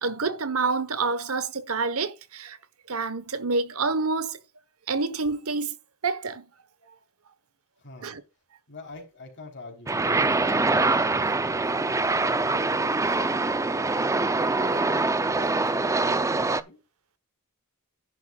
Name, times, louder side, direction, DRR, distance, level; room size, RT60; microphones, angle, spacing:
voice 1, 0.0-2.6 2.9-4.4 4.9-5.8 6.0-6.4 8.0-8.2, right 4 dB, 70° right, 1.1 m, -27 dB
voice 2, 7.8-8.1 8.7-11.6 12.3-13.3 13.9-15.0 15.6-16.8, left 2 dB, 55° left, 3.5 m, -46 dB
sound 1, 9.9-16.6, right 3 dB, 15° right, 0.5 m, -24 dB
10.5 x 10.5 x 2.3 m
head